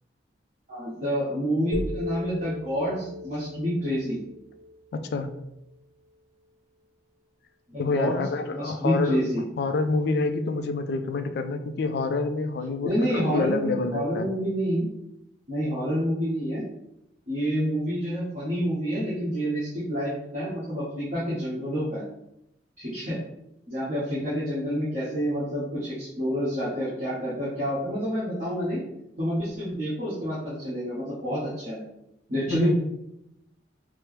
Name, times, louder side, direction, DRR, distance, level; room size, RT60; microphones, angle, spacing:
voice 1, 0.7-4.2 7.7-9.4 12.8-14.9 15.5-16.6 17.3-22.0 22.8-23.2 23.7-28.8 29.2-31.8 32.3-32.7, equal, 45° right, -11 dB, 1.2 m, -28 dB
sound 1, 1.7-5.8, left 2 dB, 90° left, 0.8 m, -37 dB
voice 2, 4.9-5.3 7.8-9.2 9.6-14.3 32.5-32.7, left 3 dB, 65° left, 9 dB, 0.3 m, -27 dB
4.5 x 2.0 x 3.1 m, 0.83 s
head